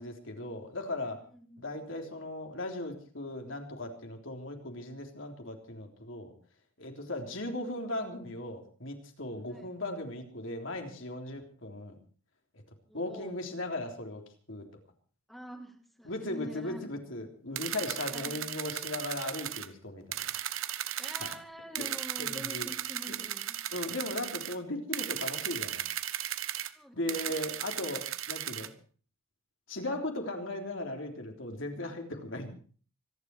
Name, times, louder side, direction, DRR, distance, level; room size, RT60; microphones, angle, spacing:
voice 1, 0.0-1.2 1.6-6.3 6.8-12.0 12.5-12.6 12.9-14.2 14.5-14.6 16.1-20.3 21.2-21.3 21.8-21.9 22.2-22.7 23.7-25.8 26.9-28.7 29.7-32.5, left 1 dB, 65° left, 3 dB, 3.5 m, -37 dB
voice 2, 1.3-1.8 9.5-9.7 12.9-13.3 15.3-16.9 18.1-18.5 21.0-23.6 26.7-27.4, equal, ahead, 4 dB, 2.4 m, -46 dB
sound 1, 17.6-19.7 20.1-21.4 21.7-24.6 24.9-26.7 27.1-28.7, right 11 dB, 75° right, 1.0 m, -36 dB
25.5 x 11.0 x 4.8 m, 0.43 s
head